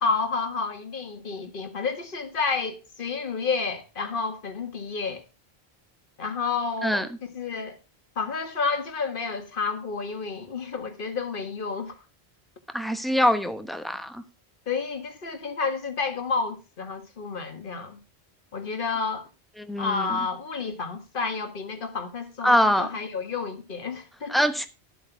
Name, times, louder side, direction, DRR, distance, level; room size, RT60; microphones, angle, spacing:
voice 1, 0.0-5.2 6.2-7.8 8.2-12.0 13.0-13.1 14.7-18.0 18.5-19.3 19.8-24.4, left 4 dB, 50° left, 1.7 m, -30 dB
voice 2, 12.7-14.2 19.7-20.2 22.4-22.9 24.3-24.7, equal, ahead, 1.0 m, -23 dB
12.5 x 7.9 x 4.6 m
omnidirectional pair, 1.1 m